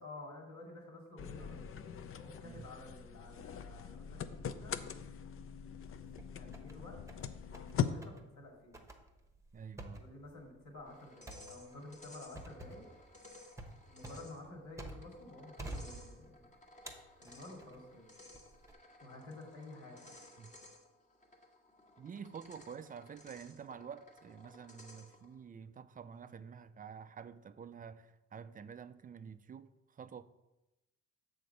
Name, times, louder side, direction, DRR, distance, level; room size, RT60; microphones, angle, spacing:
voice 1, 0.0-1.6 2.2-4.8 6.0-7.0 7.5-8.8 10.0-12.9 13.9-16.5 17.2-18.1 19.0-20.1, left 2 dB, 75° left, 2.4 m, -51 dB
sound 1, 1.2-7.9, left 8 dB, 45° left, 0.5 m, -41 dB
sound 2, 5.9-6.7 7.1-7.7 8.0-8.2 8.7-15.2 15.6-16.4 16.9-17.8 18.3-18.7, right 1 dB, 10° right, 1.0 m, -49 dB
voice 2, 9.5-10.0 20.4-20.5 22.0-30.2, right 7 dB, 30° right, 0.4 m, -49 dB
sound 3, 10.9-25.4, left 2 dB, 25° left, 1.4 m, -57 dB
6.8 x 3.9 x 6.4 m
cardioid pair, 90°, 30 cm